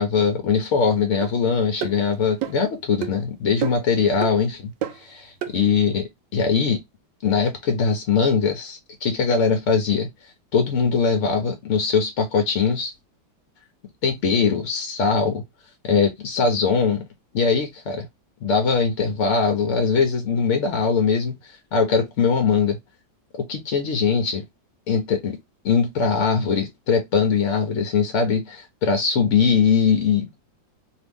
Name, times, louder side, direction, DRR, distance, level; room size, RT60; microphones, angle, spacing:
voice 1, 0.0-6.8 7.2-10.1 10.5-12.9 14.0-15.4 15.8-17.0 17.3-18.1 18.4-22.8 23.4-24.4 24.9-25.4 25.6-30.3, left 5 dB, 65° left, 0.7 m, -21 dB
sound 1, 1.2-1.3 1.8-2.0 2.4-2.7 3.0-3.2 3.6-3.9 4.2-4.4 4.8-5.1 5.4-5.6, right 11 dB, 80° right, 1.3 m, -29 dB
2.8 x 2.7 x 3.3 m
omnidirectional pair, 2.0 m